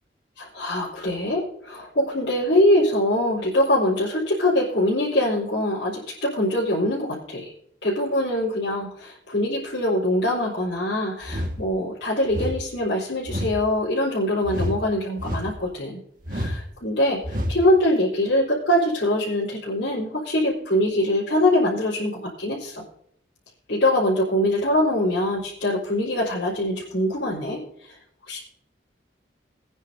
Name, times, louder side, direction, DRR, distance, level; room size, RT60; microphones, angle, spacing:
voice 1, 0.4-7.5 7.8-16.0 16.3-22.8 23.7-27.9 28.3-28.4, left 1 dB, 75° left, -9 dB, 4.0 m, -23 dB
sound 1, 11.2-11.6 12.3-12.6 13.3-13.6 14.4-14.8 15.2-15.6 16.2-16.6 17.2-17.6, equal, 45° right, 1.7 m, -28 dB
22.5 x 9.6 x 2.7 m, 0.70 s
head